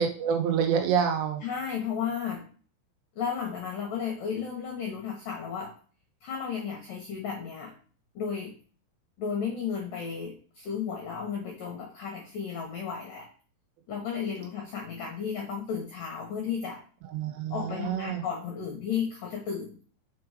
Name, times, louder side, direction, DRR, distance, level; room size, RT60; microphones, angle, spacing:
voice 1, 0.0-1.4 17.1-18.2, right 7 dB, 80° right, 3 dB, 3.8 m, -27 dB
voice 2, 1.4-2.4 3.2-5.7 6.2-7.7 8.1-8.5 9.2-13.3 13.9-16.8 17.5-19.8, left 7 dB, 75° left, 0 dB, 2.0 m, -33 dB
7.0 x 4.9 x 4.9 m, 0.41 s
omnidirectional pair, 5.8 m